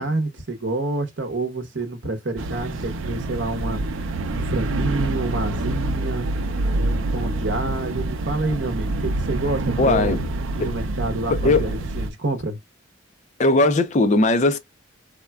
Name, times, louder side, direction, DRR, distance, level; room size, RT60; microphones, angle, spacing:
voice 1, 0.0-3.8 4.3-6.3 6.7-10.2 10.6-12.6, right 2 dB, 60° right, 0.8 m, -28 dB
sound 1, 2.4-12.1, right 2 dB, 85° right, 0.4 m, -26 dB
voice 2, 9.8-10.2 10.6-10.7 11.3-11.8 13.4-14.6, left 2 dB, 35° left, 0.4 m, -19 dB
3.6 x 2.2 x 2.2 m
head